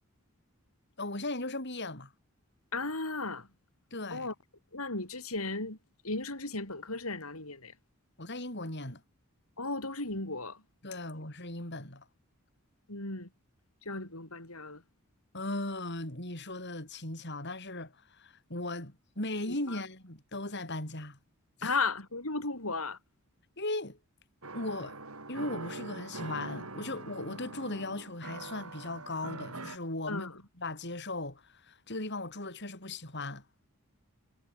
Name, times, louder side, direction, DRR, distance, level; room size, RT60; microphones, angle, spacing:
voice 1, 1.0-2.1 3.9-4.3 8.2-9.0 10.8-12.0 15.3-21.2 21.6-21.8 23.6-24.0 24.5-25.0 25.3-30.3 30.6-33.4, left 2 dB, 50° left, 7.8 m, -37 dB
voice 2, 2.7-3.5 4.1-4.3 4.7-5.8 6.0-7.7 9.6-10.6 12.9-13.3 13.8-14.8 19.5-19.8 21.6-23.0 30.1-30.4, left 3 dB, 75° left, 6.4 m, -35 dB
sound 1, 24.4-29.8, right 3 dB, 75° right, 7.0 m, -43 dB
head